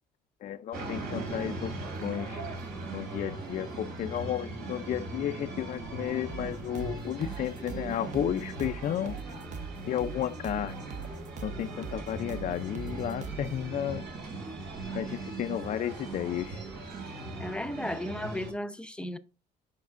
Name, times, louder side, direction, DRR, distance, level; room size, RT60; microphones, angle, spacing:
voice 1, 0.4-2.4 2.9-9.2 9.9-10.8 11.4-14.0 14.9-16.6, left 10 dB, 50° left, 0.5 m, -33 dB
sound 1, 0.7-18.5, right 3 dB, 70° right, 2.9 m, -39 dB
sound 2, 6.3-13.5, right 6 dB, 45° right, 0.8 m, -41 dB
voice 2, 17.4-19.2, left 1 dB, 5° left, 0.6 m, -34 dB
9.3 x 5.3 x 2.5 m
cardioid pair, 110°, 17 cm